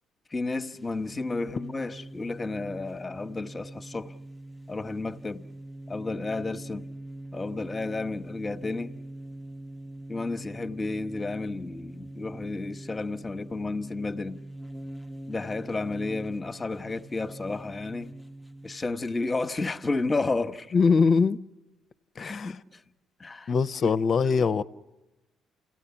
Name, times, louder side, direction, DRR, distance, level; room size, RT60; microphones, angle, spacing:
voice 1, 0.3-4.1 4.7-5.5 5.9-6.9 7.3-9.0 10.1-14.4 15.3-18.1 18.6-20.7 22.2-22.8 23.2-23.5 23.8-23.9, left 3 dB, 25° left, 1.0 m, -32 dB
sound 1, 0.6-18.8, right 1 dB, ahead, 0.8 m, -43 dB
voice 2, 20.7-21.4 22.2-22.6 23.5-24.6, left 5 dB, 50° left, 0.7 m, -22 dB
29.0 x 17.0 x 7.1 m
supercardioid pair, 60°, 0 cm